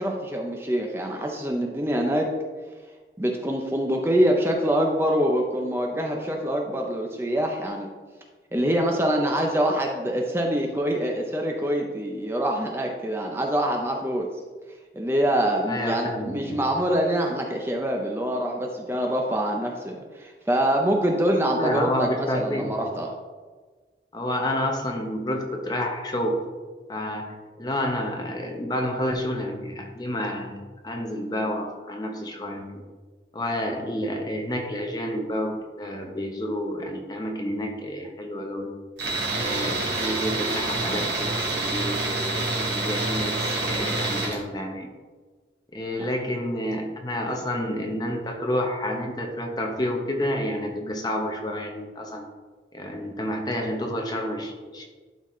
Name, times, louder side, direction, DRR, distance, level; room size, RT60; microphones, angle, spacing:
voice 1, 0.0-2.3 3.2-7.9 8.5-14.3 15.0-23.1, right 1 dB, 15° right, 1 dB, 0.6 m, -25 dB
voice 2, 15.7-16.6 21.5-22.8 24.1-26.4 26.9-32.8 33.3-38.7 39.3-44.9 45.7-52.3 52.7-54.8, left 1 dB, 25° left, 2 dB, 0.8 m, -29 dB
Tools, 39.0-44.4, right 2 dB, 90° right, 1.8 m, -27 dB
11.5 x 4.1 x 3.1 m, 1.4 s
head